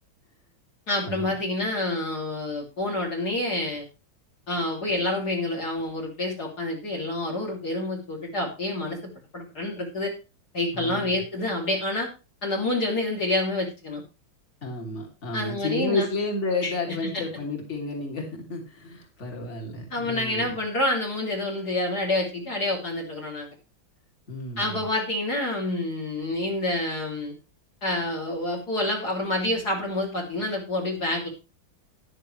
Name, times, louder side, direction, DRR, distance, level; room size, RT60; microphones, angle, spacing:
voice 1, 0.9-3.9 4.5-10.1 10.5-12.1 12.4-14.0 15.3-16.1 16.6-16.7 17.1-17.2 19.9-23.5 24.6-27.3 27.8-31.3, left 2 dB, 50° left, 2 dB, 3.5 m, -28 dB
voice 2, 10.7-11.2 14.6-20.5 24.3-24.8, left 2 dB, 30° left, 0 dB, 3.4 m, -31 dB
14.0 x 11.0 x 3.3 m, 0.30 s
omnidirectional pair, 2.3 m